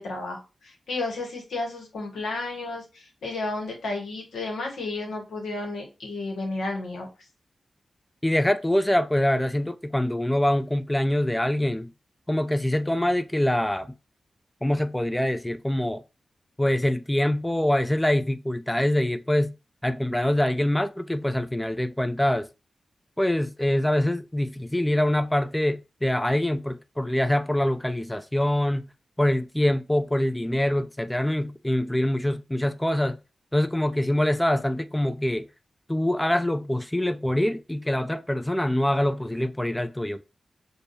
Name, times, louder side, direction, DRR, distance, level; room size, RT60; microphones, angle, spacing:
voice 1, 0.0-7.1, left 2 dB, 90° left, 1.1 m, -32 dB
voice 2, 8.2-11.9 12.3-14.0 14.6-16.0 16.6-19.5 19.8-22.5 23.2-28.9 29.2-33.2 33.5-35.5 35.9-40.2, left 1 dB, 10° left, 0.3 m, -24 dB
5.1 x 2.3 x 2.5 m
cardioid pair, 40°, 0 cm